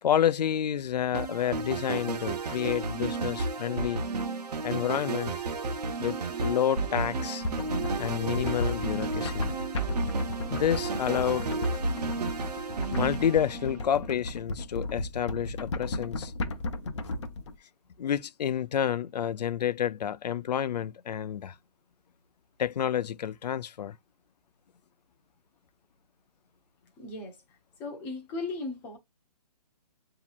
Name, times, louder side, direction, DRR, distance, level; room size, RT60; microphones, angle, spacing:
voice 1, 0.0-4.0 4.6-5.3 6.0-7.4 8.0-9.5 10.5-11.5 12.9-16.3 18.0-21.6 22.6-24.0, left 9 dB, 80° left, 0.5 m, -29 dB
sound 1, 1.1-14.1, right 3 dB, 75° right, 0.9 m, -32 dB
sound 2, 7.4-17.5, left 2 dB, 45° left, 0.7 m, -34 dB
voice 2, 27.0-27.4 27.8-29.0, left 3 dB, 10° left, 0.5 m, -37 dB
7.1 x 2.8 x 2.3 m
hypercardioid pair, 170°, 21 cm